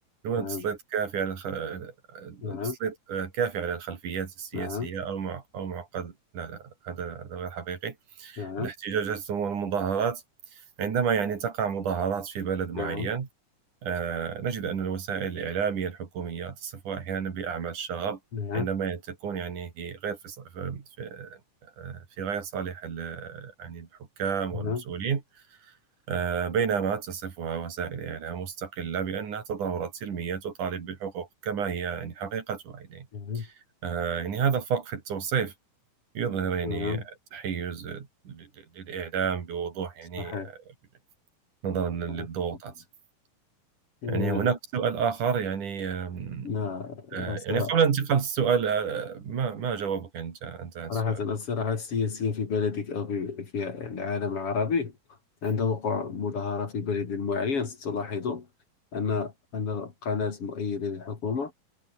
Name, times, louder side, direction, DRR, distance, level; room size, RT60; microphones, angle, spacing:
voice 1, 0.2-10.2 10.5-13.3 13.8-18.2 18.5-23.9 24.2-25.2 25.7-25.8 26.1-33.1 33.4-33.5 33.8-35.5 36.1-37.0 37.3-40.5 41.6-42.7 44.1-46.5 47.1-51.2, right 7 dB, 70° right, 4.4 m, -31 dB
voice 2, 2.4-2.8 4.5-4.9 8.4-8.7 12.8-13.1 18.3-18.7 24.5-24.8 33.1-33.5 36.6-37.0 40.2-40.5 42.2-42.3 44.0-44.5 46.4-47.7 50.9-54.9 55.4-58.5 58.9-61.5, left 5 dB, 45° left, 3.5 m, -30 dB
omnidirectional pair, 3.8 m